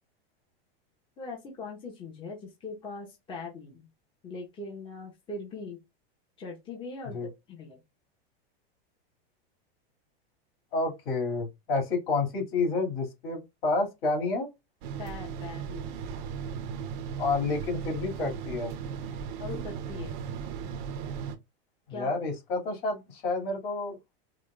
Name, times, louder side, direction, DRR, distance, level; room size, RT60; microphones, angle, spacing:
voice 1, 1.2-3.9 4.2-5.8 6.4-7.8 15.0-16.0 19.4-20.1 21.9-22.2, left 3 dB, 15° left, 0.9 m, -41 dB
voice 2, 10.7-14.5 17.2-18.7 21.9-24.0, left 3 dB, 70° left, 2.4 m, -29 dB
sound 1, 14.8-21.4, right 7 dB, 50° right, 0.7 m, -36 dB
4.9 x 2.3 x 2.3 m
supercardioid pair, 155°, 31 cm